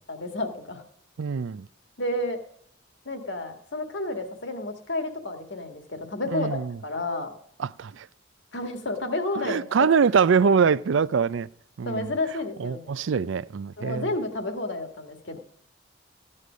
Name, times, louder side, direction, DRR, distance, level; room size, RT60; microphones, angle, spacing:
voice 1, 0.1-0.8 2.0-2.4 3.1-7.3 8.5-9.9 10.4-10.5 11.9-13.0 13.8-15.4, left 2 dB, 65° left, 1.8 m, -31 dB
voice 2, 1.2-1.7 6.3-6.8 7.6-8.1 9.4-11.5 11.8-12.1 12.6-14.1, right 6 dB, 75° right, 0.4 m, -23 dB
15.0 x 9.7 x 5.1 m
head